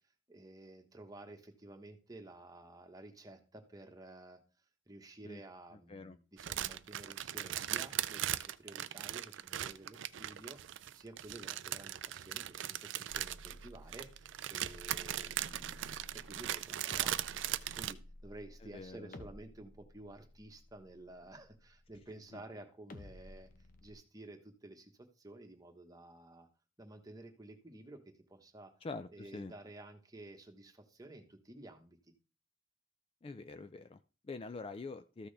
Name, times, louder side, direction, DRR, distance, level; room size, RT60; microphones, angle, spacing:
voice 1, 0.3-4.4 4.9-10.6 10.9-23.5 23.8-26.5 26.8-28.7 29.1-32.0, right 2 dB, 20° right, 5 dB, 1.2 m, -53 dB
sound 1, 6.4-17.9, right 12 dB, 70° right, 0.4 m, -39 dB
sound 2, 13.1-22.3 22.9-23.9, left 1 dB, 45° left, 0.8 m, -54 dB
voice 2, 18.6-19.3 22.3-22.4 28.8-29.5 33.2-35.3, left 3 dB, 30° left, 11 dB, 0.3 m, -45 dB
13.5 x 6.1 x 3.4 m, 0.34 s
head